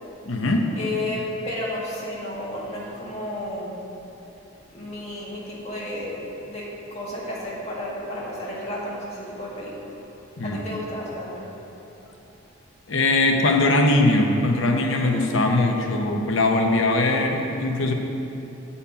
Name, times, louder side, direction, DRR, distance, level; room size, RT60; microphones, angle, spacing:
voice 1, 0.2-0.7 10.4-10.8 12.9-17.9, left 2 dB, 70° left, 3 dB, 0.8 m, -21 dB
voice 2, 0.7-3.7 4.7-9.9 10.4-11.5 15.8-15.9, left 1 dB, 35° left, -6 dB, 1.6 m, -32 dB
8.5 x 4.3 x 5.7 m, 3.0 s
head